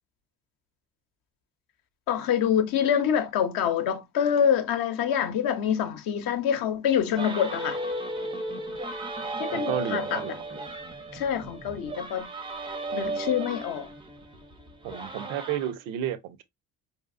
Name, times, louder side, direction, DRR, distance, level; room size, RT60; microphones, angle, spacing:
voice 1, 2.1-7.8 9.4-10.3 11.1-12.3 12.9-13.9, left 8 dB, 50° left, 0.8 m, -26 dB
sound 1, 7.2-15.7, right 2 dB, 10° right, 0.6 m, -35 dB
voice 2, 9.5-10.3 14.8-16.4, right 10 dB, 60° right, 0.6 m, -32 dB
4.6 x 2.8 x 2.3 m
figure-of-eight pair, 50°, 45 cm